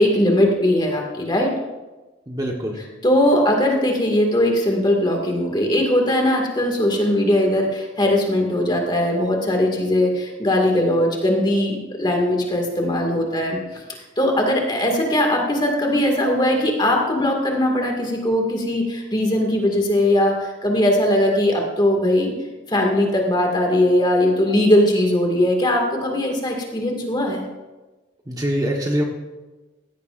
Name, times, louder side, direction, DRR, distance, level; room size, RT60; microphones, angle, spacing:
voice 1, 0.0-1.5 2.8-22.3 22.7-27.4, left 1 dB, 25° left, 1 dB, 2.1 m, -20 dB
voice 2, 2.3-2.8 28.3-29.0, equal, 20° right, 0 dB, 1.3 m, -23 dB
16.0 x 15.0 x 2.6 m, 1.2 s
head